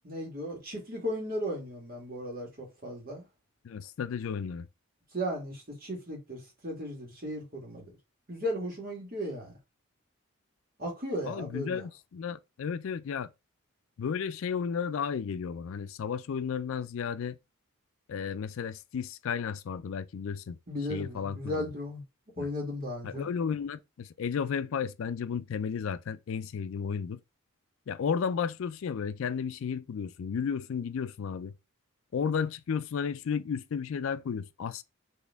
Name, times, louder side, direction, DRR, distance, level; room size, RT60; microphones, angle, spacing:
voice 1, 0.0-3.2 5.1-7.9 8.3-9.6 10.8-11.8 20.7-22.0 22.4-23.3, equal, 40° right, 1.5 m, -36 dB
voice 2, 3.6-4.7 11.2-13.3 14.0-17.4 18.1-20.6 20.9-21.7 22.4-22.5 23.0-27.2 27.9-31.5 32.1-34.8, left 6 dB, 70° left, 0.3 m, -33 dB
4.3 x 2.8 x 3.4 m
head